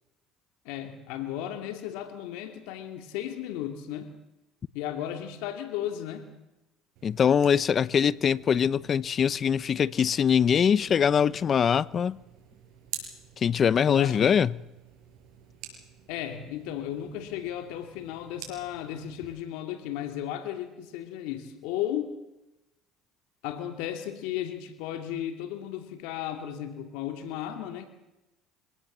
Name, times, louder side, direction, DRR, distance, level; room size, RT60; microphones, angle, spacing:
voice 1, 0.6-4.1 4.7-6.3 13.9-14.4 16.1-22.2 23.4-27.9, left 11 dB, 80° left, 2.4 m, -35 dB
voice 2, 7.0-12.2 13.4-14.5, left 7 dB, 40° left, 0.7 m, -23 dB
sound 1, 7.0-19.4, right 8 dB, 65° right, 6.3 m, -48 dB
25.0 x 17.5 x 7.4 m
supercardioid pair, 105°, 0 cm